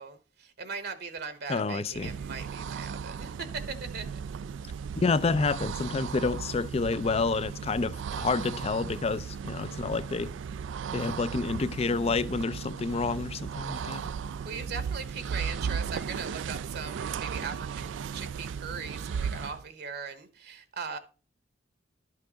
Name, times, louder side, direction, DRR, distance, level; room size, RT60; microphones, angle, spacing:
voice 1, 0.0-4.2 14.4-21.0, right 5 dB, 55° right, 0.9 m, -39 dB
voice 2, 1.5-2.1 5.0-10.3 10.9-14.0, left 4 dB, 35° left, 0.4 m, -29 dB
sound 1, 1.9-19.7, right 6 dB, 75° right, 0.3 m, -36 dB
11.5 x 5.7 x 3.9 m
head